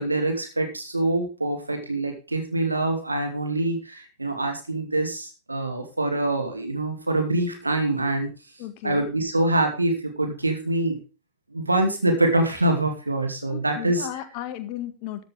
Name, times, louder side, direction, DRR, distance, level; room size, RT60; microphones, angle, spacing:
voice 1, 0.0-8.3 8.8-11.0 11.5-14.1, right 2 dB, 80° right, 4 dB, 2.5 m, -25 dB
voice 2, 8.6-9.1 13.5-15.2, left 12 dB, 45° left, 10 dB, 1.9 m, -35 dB
13.5 x 10.5 x 3.5 m, 0.31 s
figure-of-eight pair, 90°, 0 cm